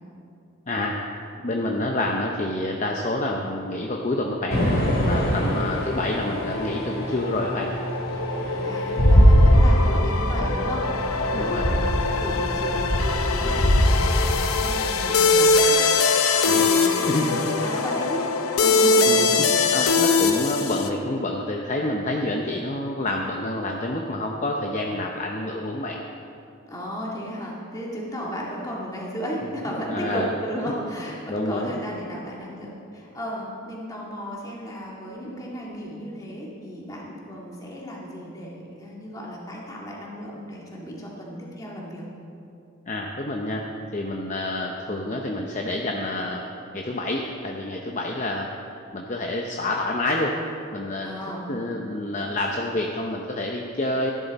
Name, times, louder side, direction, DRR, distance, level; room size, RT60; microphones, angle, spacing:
voice 1, 0.7-1.0 1.4-4.6 5.1-7.7 11.3-11.9 16.4-17.3 19.0-26.0 29.7-30.3 31.3-31.8 42.9-43.6 43.9-46.5 46.7-48.5 48.9-50.4 50.7-51.1 51.5-54.1, left 1 dB, 35° left, 1 dB, 0.7 m, -28 dB
sound 1, 4.5-14.3, equal, 65° left, 2.9 m, -22 dB
sound 2, 4.6-20.9, left 4 dB, 80° left, 0.8 m, -23 dB
voice 2, 8.6-15.8 16.1-18.3 18.6-19.4 26.6-42.1 51.0-51.5, equal, 15° left, -4 dB, 1.9 m, -35 dB
14.0 x 11.5 x 4.1 m, 2.7 s
head